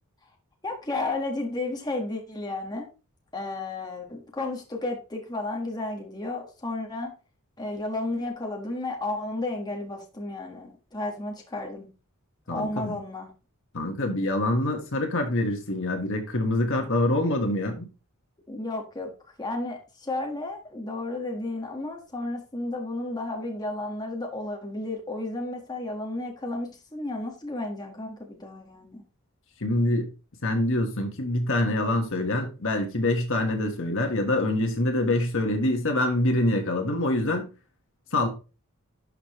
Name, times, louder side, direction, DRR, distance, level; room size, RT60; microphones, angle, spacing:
voice 1, 0.6-2.9 3.3-7.1 7.6-11.9 12.5-13.3 18.5-19.1 19.4-29.0, left 2 dB, 20° left, 1.6 m, -32 dB
voice 2, 12.5-13.0 13.7-17.8 29.6-30.1 30.4-37.5 38.1-38.3, left 1 dB, 60° left, 1.5 m, -25 dB
11.5 x 5.1 x 3.1 m
head